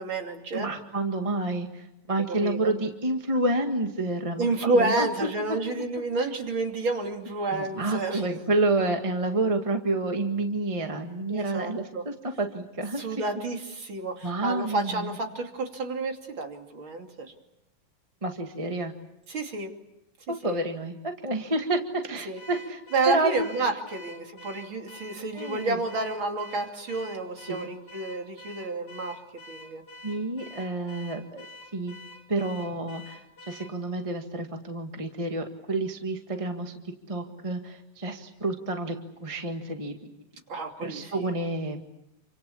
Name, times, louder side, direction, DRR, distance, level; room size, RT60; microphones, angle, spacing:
voice 1, 0.0-0.7 2.3-2.7 4.3-8.3 11.3-12.1 13.0-17.3 19.3-19.7 20.4-20.6 22.2-22.4 22.9-29.8 40.5-41.3, right 3 dB, 45° right, 3 dB, 3.4 m, -30 dB
voice 2, 0.5-5.1 5.3-5.6 7.5-13.0 14.2-15.2 18.2-18.9 20.3-22.8 23.1-23.4 25.3-25.8 27.5-27.7 30.0-31.5 31.7-31.9 32.3-33.2 33.5-36.7 37.1-40.1 40.8-41.8, right 2 dB, 15° right, 4 dB, 1.2 m, -29 dB
Car / Alarm, 22.4-33.8, left 1 dB, 35° left, 2.6 m, -47 dB
28.5 x 25.5 x 7.1 m, 0.86 s
omnidirectional pair, 3.3 m